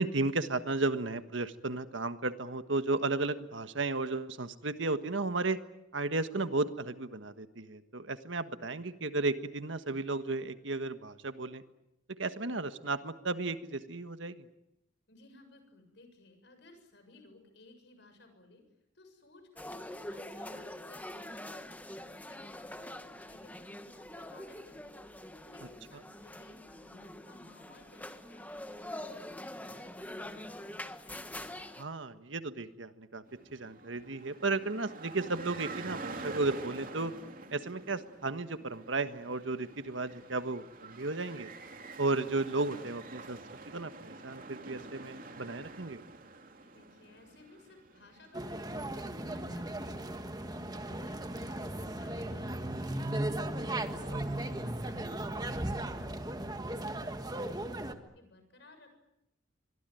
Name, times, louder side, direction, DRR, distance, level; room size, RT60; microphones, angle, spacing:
voice 1, 0.0-5.6 5.9-11.6 12.2-14.5 31.8-33.2 33.5-37.1 37.5-41.5 42.0-43.4 43.7-46.0 54.1-54.2, right 3 dB, 75° right, 10 dB, 1.5 m, -34 dB
voice 2, 15.1-18.6 18.9-21.7 22.1-25.0 25.3-30.9 46.6-50.3 50.7-53.4 53.7-59.0, left 2 dB, 60° left, 7 dB, 7.3 m, -58 dB
sound 1, 19.6-31.8, left 1 dB, 10° left, 1.6 m, -45 dB
sound 2, 33.3-53.2, right 3 dB, 45° right, 3.1 m, -48 dB
sound 3, 48.3-57.9, right 1 dB, 20° right, 1.6 m, -36 dB
25.5 x 23.0 x 9.3 m, 0.86 s
head